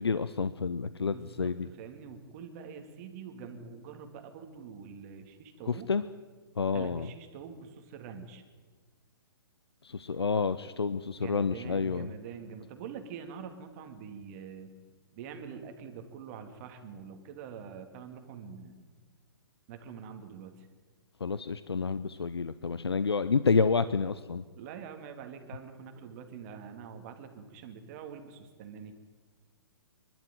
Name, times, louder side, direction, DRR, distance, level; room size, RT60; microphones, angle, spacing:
voice 1, 0.0-1.7 5.9-6.0 6.6-7.0 9.8-12.1 21.2-24.4, left 5 dB, 85° left, 14 dB, 0.7 m, -29 dB
voice 2, 1.0-5.9 6.7-8.4 11.1-14.8 15.1-18.9 19.7-20.7 24.6-28.9, right 6 dB, 40° right, 6 dB, 2.6 m, -45 dB
25.0 x 12.0 x 9.3 m, 1.4 s
figure-of-eight pair, 125°, 13 cm